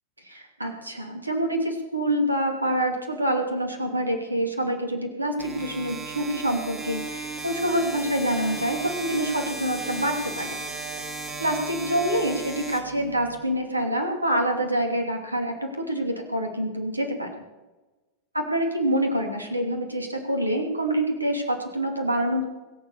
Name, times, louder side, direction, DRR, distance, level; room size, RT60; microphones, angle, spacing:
voice 1, 0.2-10.6 11.4-17.3 18.3-22.4, right 1 dB, 85° right, 4 dB, 2.7 m, -26 dB
sound 1, 5.4-13.4, right 3 dB, 15° right, 3.9 m, -35 dB
22.0 x 7.3 x 6.8 m, 1.1 s
figure-of-eight pair, 90°, 0 cm